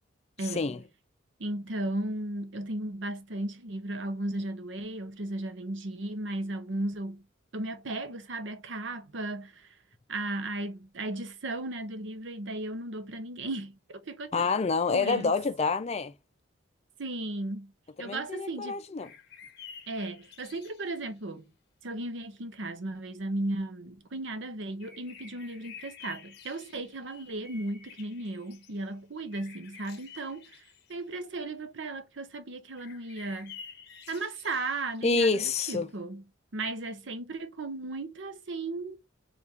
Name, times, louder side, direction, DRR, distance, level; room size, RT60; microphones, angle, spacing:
voice 1, 0.4-0.7 1.4-7.2 7.5-9.7 10.1-14.5 14.9-15.3 17.0-17.7 18.0-18.8 19.9-21.5 21.8-30.6 30.9-33.6 34.1-36.2 36.5-39.0, right 2 dB, 60° right, 0.7 m, -35 dB
voice 2, 14.3-16.1 18.0-19.1 35.0-35.9, left 4 dB, 30° left, 0.4 m, -27 dB
sound 1, 19.0-21.1 24.6-28.8 29.3-31.1 32.8-35.1, left 7 dB, 50° left, 0.8 m, -50 dB
4.4 x 2.5 x 3.2 m
head